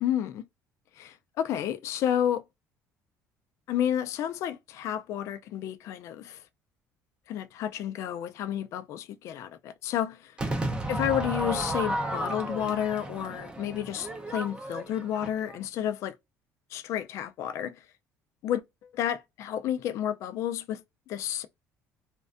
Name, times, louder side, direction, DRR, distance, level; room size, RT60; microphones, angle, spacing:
voice 1, 0.0-0.4 1.0-2.4 3.7-6.4 7.3-10.4 10.9-16.1 16.7-17.9 18.4-18.6 18.9-21.5, left 10 dB, 60° left, 0.3 m, -31 dB
Crowd / Fireworks, 10.4-15.6, right 1 dB, 15° right, 0.6 m, -33 dB
2.4 x 2.2 x 2.4 m
cardioid pair, 130°, 6 cm